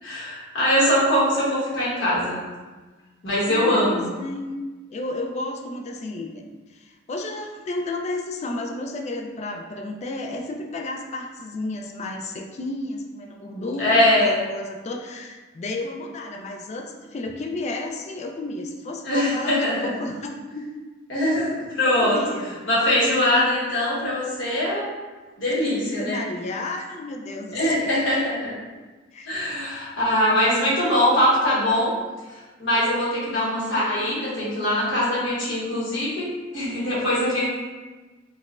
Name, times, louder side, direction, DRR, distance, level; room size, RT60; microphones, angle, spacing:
voice 1, 0.0-2.4 3.2-4.0 13.8-14.4 19.0-19.9 21.1-22.2 22.7-24.9 25.4-26.2 27.5-28.5 29.3-31.9 32.3-37.5, left 1 dB, 65° left, -8 dB, 1.2 m, -22 dB
voice 2, 3.5-4.5 4.9-6.4 6.7-20.7 21.8-22.5 25.7-27.9 29.1-29.3, left 2 dB, 35° left, 2 dB, 0.3 m, -32 dB
4.1 x 2.1 x 2.4 m, 1.3 s
head